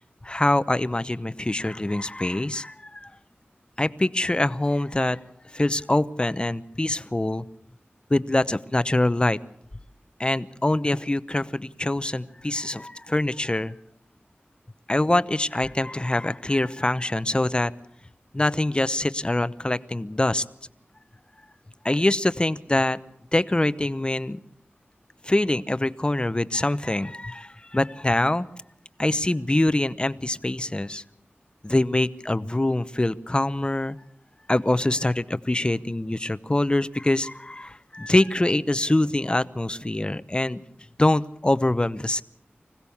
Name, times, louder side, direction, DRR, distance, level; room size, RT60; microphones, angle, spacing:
voice 1, 0.2-3.1 3.8-5.2 5.5-7.4 8.1-9.4 10.2-13.7 14.9-17.7 18.3-20.4 21.8-23.0 23.3-24.4 25.2-28.5 29.0-31.0 31.6-34.0 34.5-40.6 41.0-42.2, left 1 dB, 25° left, 14 dB, 0.8 m, -24 dB
25.0 x 16.5 x 7.2 m, 0.76 s
wide cardioid pair, 70°, 4 cm